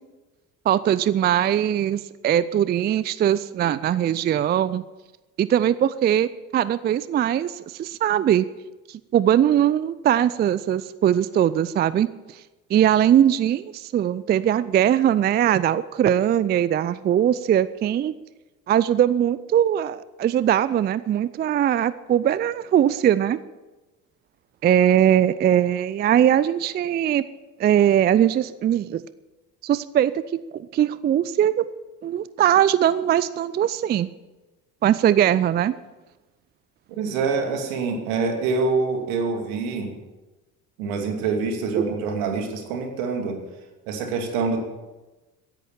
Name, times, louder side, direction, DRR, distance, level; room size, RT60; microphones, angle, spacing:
voice 1, 0.7-4.8 5.4-8.5 8.9-12.4 12.7-18.1 18.7-23.4 24.6-27.2 27.6-29.0 29.6-31.7 32.0-34.1 34.8-35.7, right 10 dB, 25° right, 17 dB, 0.4 m, -21 dB
voice 2, 37.0-39.9 40.8-43.4 43.9-44.6, right 4 dB, 65° right, 4 dB, 2.8 m, -25 dB
16.0 x 10.5 x 7.1 m, 1.1 s
figure-of-eight pair, 55°, 46 cm